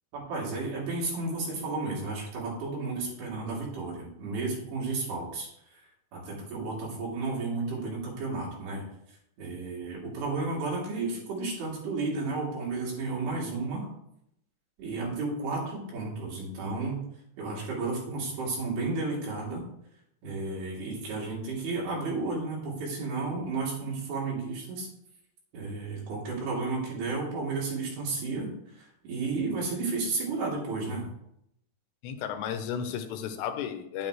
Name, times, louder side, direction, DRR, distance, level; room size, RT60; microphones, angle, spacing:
voice 1, 0.1-5.8 6.1-8.8 9.4-13.9 14.8-17.0 17.4-19.6 20.2-24.9 25.5-31.1, right 3 dB, 70° right, -5 dB, 4.7 m, -32 dB
voice 2, 32.0-34.1, left 8 dB, 90° left, 8 dB, 3.0 m, -33 dB
10.0 x 9.3 x 3.1 m, 0.76 s
omnidirectional pair, 4.9 m